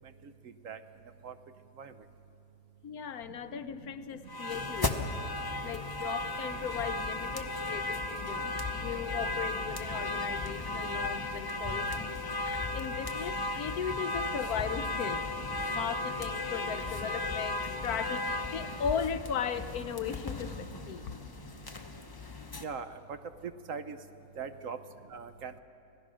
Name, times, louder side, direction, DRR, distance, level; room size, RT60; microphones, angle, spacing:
voice 1, 2.8-5.1 5.6-12.1 12.7-15.2 15.7-21.1, left 7 dB, 70° left, 10 dB, 1.2 m, -37 dB
sound 1, 4.3-22.6, left 2 dB, 20° left, 0.7 m, -35 dB
voice 2, 24.4-24.8 25.1-25.6, right 5 dB, 60° right, 10 dB, 1.1 m, -39 dB
26.0 x 17.5 x 6.3 m, 2.6 s
omnidirectional pair, 1.7 m